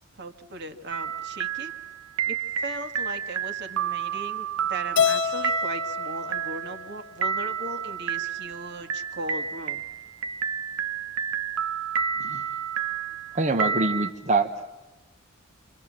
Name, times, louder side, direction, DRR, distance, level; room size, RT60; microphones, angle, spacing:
voice 1, 0.2-1.7 2.3-9.8, right 2 dB, 50° right, 7 dB, 1.9 m, -38 dB
sound 1, 0.9-14.1, right 7 dB, 75° right, 0.9 m, -30 dB
Keyboard (musical), 5.0-7.3, left 8 dB, 55° left, 0.8 m, -28 dB
voice 2, 13.3-14.5, right 3 dB, 35° right, 4 dB, 1.0 m, -24 dB
28.0 x 25.0 x 7.4 m, 1.2 s
head